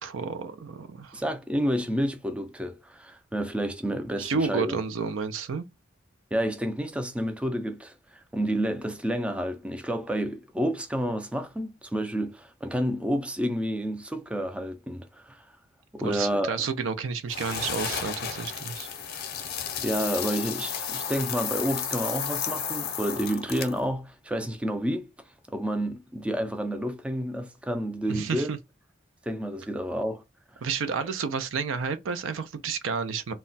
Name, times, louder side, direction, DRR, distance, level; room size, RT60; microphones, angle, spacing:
voice 1, 0.0-1.2 4.2-5.6 16.0-18.9 28.1-28.6 30.6-33.3, right 5 dB, 80° right, 0.4 m, -31 dB
voice 2, 1.1-4.8 6.3-15.4 15.9-16.7 19.8-25.1 25.5-28.5 29.3-30.2, equal, 5° right, 0.3 m, -30 dB
sound 1, 17.3-23.9, left 7 dB, 55° left, 0.6 m, -33 dB
2.2 x 2.2 x 3.9 m
head